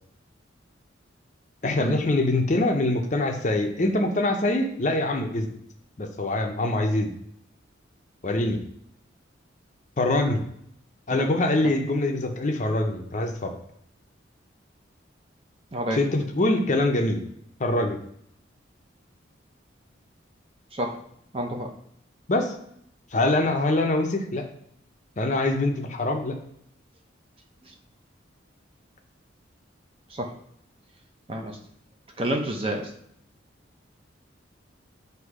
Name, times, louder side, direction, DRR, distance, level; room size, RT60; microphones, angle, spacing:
voice 1, 1.6-5.5 6.0-7.1 8.2-8.6 10.0-10.4 11.1-13.6 15.9-17.2 17.6-18.0 22.3-22.5 23.1-24.4 25.2-26.4, left 2 dB, 40° left, 4 dB, 0.6 m, -24 dB
voice 2, 15.7-16.0 20.7-21.0 21.3-21.7 27.6-27.7 30.1-30.3 31.3-31.6 32.2-32.9, right 1 dB, 30° right, 2 dB, 0.6 m, -29 dB
7.9 x 2.7 x 4.8 m, 0.72 s
head